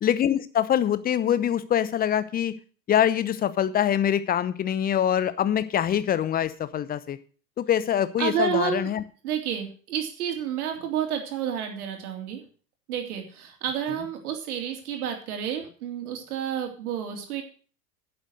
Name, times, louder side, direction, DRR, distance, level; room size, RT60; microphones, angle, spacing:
voice 1, 0.0-2.5 2.9-7.2 7.6-9.0, left 10 dB, 20° left, 15 dB, 0.8 m, -24 dB
voice 2, 8.2-8.9 9.2-12.4 12.9-17.4, right 8 dB, 60° right, 3 dB, 3.4 m, -30 dB
10.5 x 7.9 x 6.5 m, 0.41 s
figure-of-eight pair, 95°, 49 cm